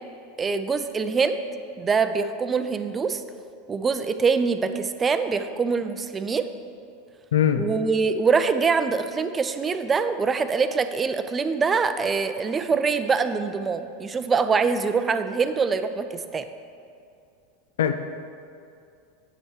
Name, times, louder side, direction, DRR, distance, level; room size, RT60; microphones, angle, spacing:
voice 1, 0.4-1.4 1.8-3.2 3.7-6.5 7.5-16.5, right 5 dB, 25° right, 10 dB, 0.5 m, -24 dB
voice 2, 7.3-7.7 17.8-17.9, left 9 dB, 70° left, 8 dB, 0.4 m, -20 dB
8.9 x 7.1 x 4.8 m, 2.4 s
figure-of-eight pair, 85°, 0 cm